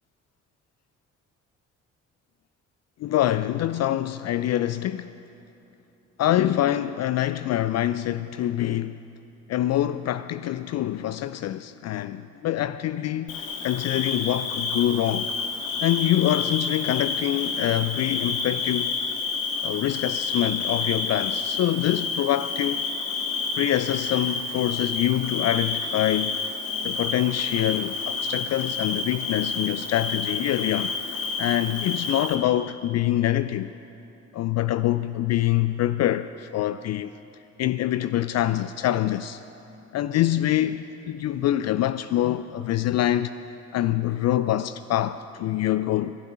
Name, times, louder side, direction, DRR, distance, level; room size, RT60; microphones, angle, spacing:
voice 1, 3.0-5.1 6.2-9.0 9.5-15.3 15.8-18.9 19.6-22.8 23.5-26.4 26.8-33.7 34.3-37.1 37.6-39.4 39.9-43.3 43.7-46.2, left 13 dB, 40° left, 0.5 m, -25 dB
Bird / Cricket, 13.3-32.4, left 4 dB, 65° left, 1.7 m, -29 dB
20.5 x 11.5 x 5.7 m
figure-of-eight pair, 45°, 39 cm